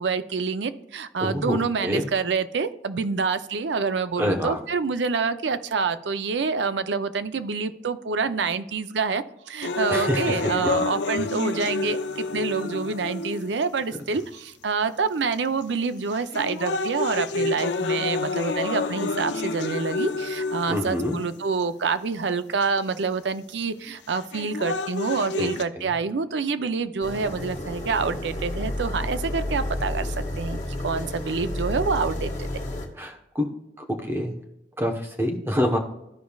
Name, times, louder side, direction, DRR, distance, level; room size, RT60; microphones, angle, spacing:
voice 1, 0.0-32.3, right 4 dB, 90° right, 11 dB, 0.6 m, -27 dB
voice 2, 1.2-2.0 4.2-4.6 9.9-10.7 11.1-11.2 20.7-21.1 25.4-25.5 25.8-25.9 33.0-33.5 34.1-34.3 34.8-35.8, equal, 15° right, 4 dB, 1.0 m, -26 dB
sound 1, 9.6-13.6 14.4-14.5 15.3-15.6 16.1-21.6 22.6-22.7 24.1-25.6, left 3 dB, 80° left, 0.5 m, -29 dB
sound 2, 27.0-32.9, left 1 dB, 45° left, 1.5 m, -31 dB
13.5 x 5.2 x 2.3 m, 0.86 s
head